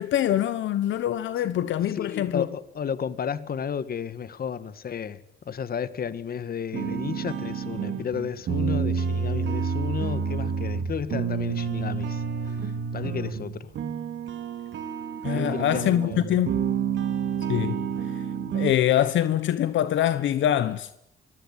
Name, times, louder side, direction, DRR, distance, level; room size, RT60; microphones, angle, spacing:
voice 1, 0.0-2.5 15.2-16.6 17.5-17.9 18.1-18.2 18.5-20.9, left 11 dB, 75° left, 1.1 m, -24 dB
voice 2, 2.0-5.2 5.5-13.7 15.3-16.2, left 7 dB, 50° left, 1.6 m, -33 dB
sound 1, 6.7-18.7, right 6 dB, 70° right, 3.2 m, -29 dB
24.5 x 16.5 x 9.9 m
cardioid pair, 90°, 20 cm